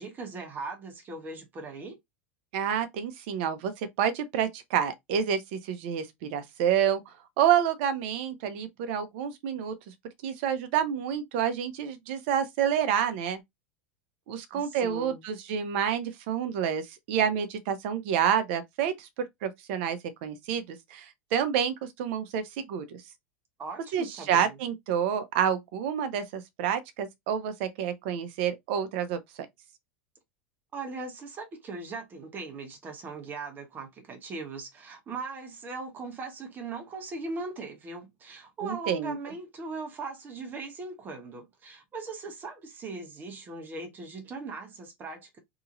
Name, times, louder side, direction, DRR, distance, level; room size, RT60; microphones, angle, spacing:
voice 1, 0.0-2.0 14.5-15.2 23.6-24.6 30.7-45.4, right 3 dB, 30° right, 1.1 m, -39 dB
voice 2, 2.5-9.7 10.2-13.4 14.3-23.0 23.9-29.5 38.6-39.2, right 8 dB, 65° right, 0.7 m, -29 dB
2.9 x 2.7 x 2.5 m
supercardioid pair, 115°, 7 cm